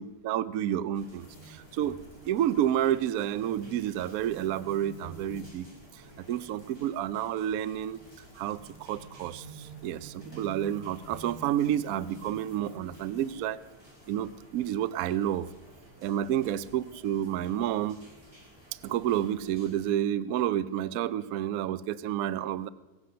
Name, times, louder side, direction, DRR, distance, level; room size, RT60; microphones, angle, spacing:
voice 1, 0.0-2.0 2.2-5.7 6.3-8.0 8.4-13.6 14.1-15.5 16.0-18.0 18.8-22.7, right 11 dB, 75° right, 16 dB, 0.8 m, -30 dB
sound 1, 0.9-19.9, equal, 10° right, 3.8 m, -54 dB
sound 2, 1.2-13.4, right 2 dB, 30° left, 1.0 m, -51 dB
22.0 x 7.7 x 6.7 m, 1.2 s
omnidirectional pair, 2.1 m